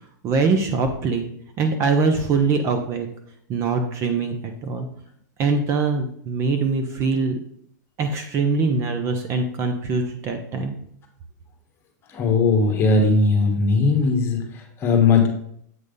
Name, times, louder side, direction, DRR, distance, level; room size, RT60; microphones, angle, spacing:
voice 1, 0.2-1.2 1.6-3.1 3.5-4.9 5.4-7.4 8.0-10.7, right 4 dB, 30° right, 6 dB, 0.7 m, -23 dB
voice 2, 12.1-15.3, left 4 dB, 25° left, 3 dB, 1.4 m, -19 dB
8.0 x 3.2 x 5.3 m, 0.67 s
supercardioid pair, 150°, 10 cm